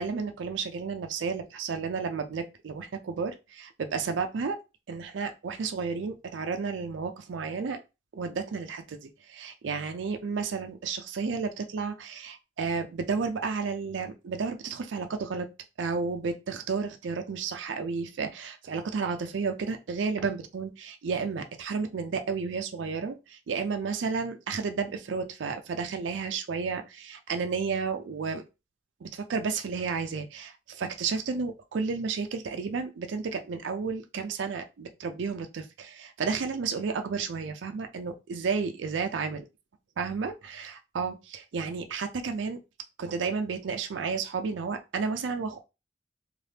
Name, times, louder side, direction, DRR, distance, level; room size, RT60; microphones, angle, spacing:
voice 1, 0.0-4.6 4.9-7.8 8.1-15.5 15.8-28.4 29.0-39.4 40.0-42.6 43.0-45.6, right 5 dB, 85° right, 6 dB, 0.4 m, -32 dB
3.3 x 2.4 x 2.8 m, 0.26 s
head